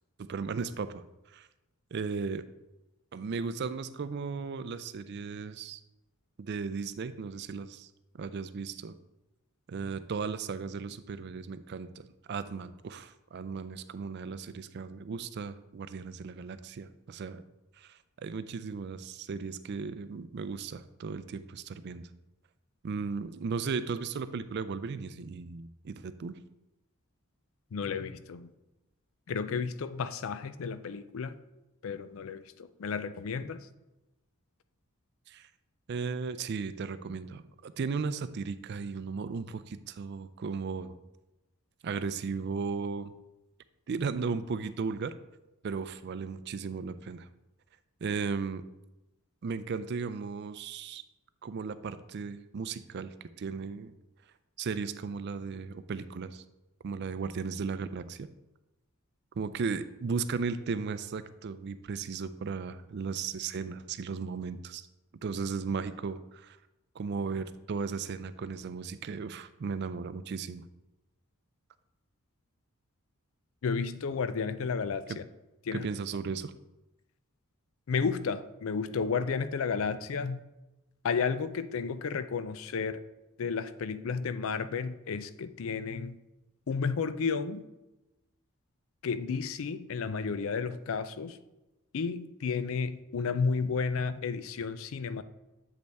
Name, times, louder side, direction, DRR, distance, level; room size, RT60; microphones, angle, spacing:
voice 1, 0.2-1.5 1.9-2.5 3.1-5.8 6.4-9.0 9.7-17.4 17.8-22.1 22.8-26.4 35.3-35.5 35.9-41.0 41.8-43.1 43.9-45.1 45.6-47.3 48.0-48.7 49.4-51.0 51.4-53.9 54.6-56.4 56.8-58.3 59.4-64.9 65.2-66.6 66.9-70.6 75.7-76.5, right 5 dB, 50° right, 13 dB, 0.4 m, -36 dB
voice 2, 27.7-28.5 29.3-31.4 31.8-33.7 73.6-75.2 75.6-75.9 77.9-80.4 81.0-83.0 83.4-86.2 86.7-87.6 89.0-91.4 91.9-95.2, left 5 dB, 65° left, 13 dB, 0.4 m, -32 dB
7.8 x 5.3 x 3.4 m, 1.0 s
head